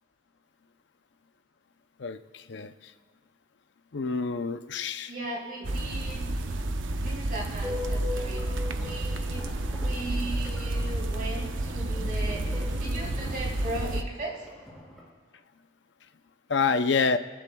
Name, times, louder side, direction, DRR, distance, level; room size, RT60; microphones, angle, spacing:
voice 1, 2.0-2.7 3.9-5.1 16.5-17.2, left 5 dB, 65° left, 10 dB, 0.6 m, -27 dB
voice 2, 5.0-6.2 7.0-9.5 9.8-14.5, right 1 dB, 50° right, -5 dB, 4.3 m, -37 dB
sound 1, 5.6-14.0, right 1 dB, 85° right, 0.8 m, -30 dB
sound 2, 7.6-15.1, left 3 dB, ahead, 3.5 m, -42 dB
22.5 x 15.5 x 2.3 m, 1.5 s
head